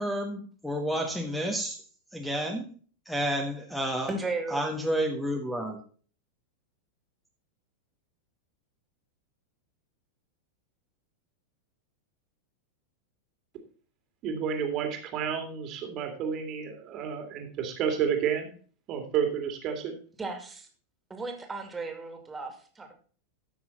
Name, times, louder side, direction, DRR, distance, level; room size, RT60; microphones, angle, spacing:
voice 1, 0.0-1.8 2.1-2.7 3.0-4.1 4.5-5.8, equal, 5° left, 3 dB, 1.4 m, -30 dB
voice 2, 4.1-4.6 20.2-20.7 21.1-23.0, right 3 dB, 15° right, 4 dB, 2.4 m, -35 dB
voice 3, 14.2-18.5 18.9-20.0, right 7 dB, 35° right, 5 dB, 2.2 m, -30 dB
13.5 x 6.1 x 4.1 m, 0.42 s
figure-of-eight pair, 90°, 0 cm